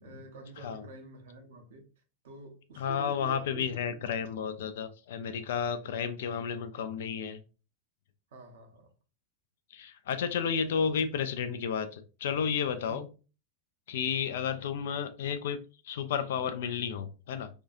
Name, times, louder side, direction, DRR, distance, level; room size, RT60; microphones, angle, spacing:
voice 1, 0.0-1.8 2.2-4.1 8.3-8.9 10.7-10.8 12.9-13.0 14.1-14.2, right 3 dB, 60° right, 0.7 m, -48 dB
voice 2, 0.6-0.9 2.8-7.4 9.7-13.1 13.9-15.6 15.8-17.5, left 7 dB, 60° left, 0.3 m, -32 dB
2.7 x 2.3 x 2.5 m
figure-of-eight pair, 90°, 0 cm